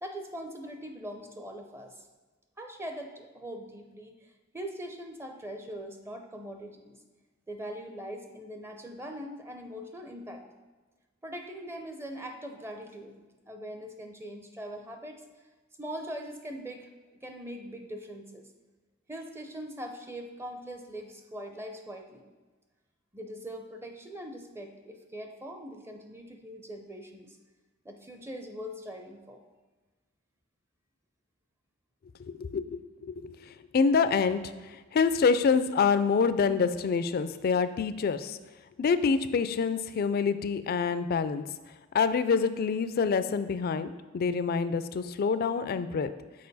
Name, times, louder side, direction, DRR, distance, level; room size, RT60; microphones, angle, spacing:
voice 1, 0.0-2.1 2.6-4.3 4.5-7.0 7.5-10.4 11.2-15.2 15.8-16.9 17.2-18.5 19.1-22.3 23.1-27.4 27.8-29.4, equal, 10° right, 4 dB, 0.5 m, -41 dB
voice 2, 32.4-33.4 33.7-34.5 34.9-38.4 38.8-41.4 41.9-43.9 44.1-46.1, left 5 dB, 50° left, 12 dB, 0.3 m, -26 dB
6.6 x 5.0 x 4.0 m, 1.3 s
head